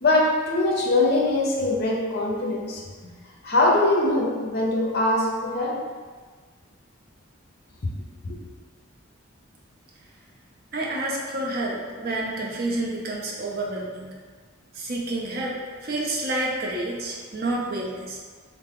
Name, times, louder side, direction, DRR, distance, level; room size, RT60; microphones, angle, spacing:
voice 1, 0.0-2.8 3.4-5.8 8.2-8.4, left 2 dB, 50° left, -2 dB, 0.6 m, -22 dB
voice 2, 10.7-14.1 14.7-18.2, right 2 dB, 45° right, -3 dB, 0.5 m, -29 dB
3.3 x 2.0 x 3.6 m, 1.5 s
head